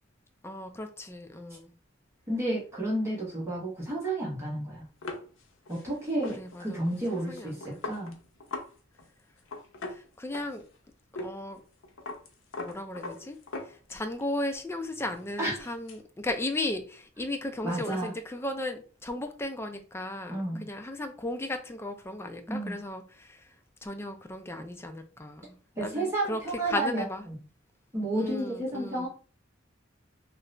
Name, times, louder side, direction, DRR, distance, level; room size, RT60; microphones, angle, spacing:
voice 1, 0.4-1.7 6.4-7.8 9.9-10.6 11.2-11.6 12.6-13.4 13.6-23.5 23.8-26.4 26.7-27.3 28.1-29.1, left 1 dB, 15° left, 6 dB, 0.4 m, -36 dB
voice 2, 2.3-4.8 5.7-8.2 15.4-15.7 17.6-18.1 20.3-20.7 22.5-22.8 25.8-27.3 27.9-29.1, right 1 dB, 15° right, -6 dB, 1.2 m, -31 dB
sound 1, 5.0-8.7 9.0-9.1 9.4-10.8 11.2-11.3 11.6-14.2 14.6-16.0, left 2 dB, 90° left, 0.7 m, -41 dB
2.8 x 2.5 x 3.2 m, 0.39 s
head